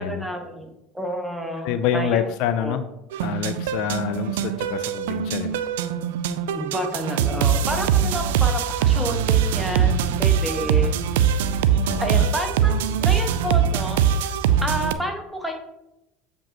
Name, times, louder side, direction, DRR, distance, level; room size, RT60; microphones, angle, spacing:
voice 1, 0.0-2.3 2.6-2.8 6.5-10.9 12.0-14.0 14.6-15.5, equal, 5° right, 2 dB, 1.3 m, -30 dB
voice 2, 1.6-2.8 3.2-5.6 9.8-10.2 11.9-12.3, left 9 dB, 70° left, 10 dB, 0.4 m, -27 dB
sound 1, 3.1-14.9, right 8 dB, 80° right, 0.3 m, -22 dB
7.5 x 5.1 x 2.9 m, 0.90 s
hypercardioid pair, 80°, 0 cm